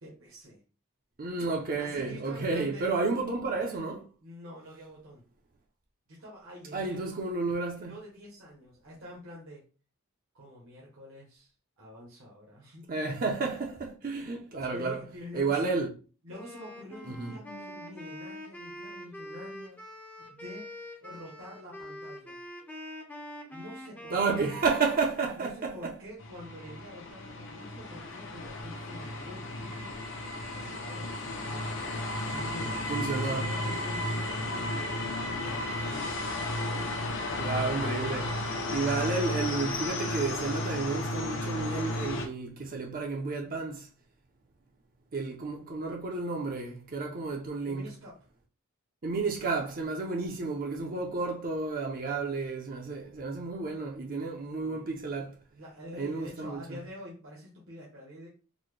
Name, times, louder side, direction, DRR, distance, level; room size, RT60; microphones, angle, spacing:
voice 1, 0.0-0.6 1.8-3.1 4.2-5.2 6.1-7.1 7.9-9.6 10.3-11.5 11.8-12.9 14.7-15.8 16.2-19.8 20.3-20.7 21.0-22.4 23.5-24.2 25.4-30.0 30.5-32.8 33.1-36.5 42.6-42.8 47.7-48.3 54.5-54.8 55.5-58.3, left 1 dB, 65° right, 1.0 m, -47 dB
voice 2, 1.2-4.1 6.7-8.0 12.9-15.0 15.3-15.9 17.1-17.3 24.1-25.9 32.9-33.5 37.3-38.4 38.7-43.9 45.1-47.8 49.0-55.4 55.9-56.6, right 4 dB, 40° right, 0.6 m, -31 dB
Wind instrument woodwind instrument, 16.3-25.1, left 1 dB, 10° left, 0.6 m, -44 dB
sound 1, 26.2-42.3, left 1 dB, 60° left, 0.7 m, -33 dB
4.0 x 2.1 x 3.2 m
head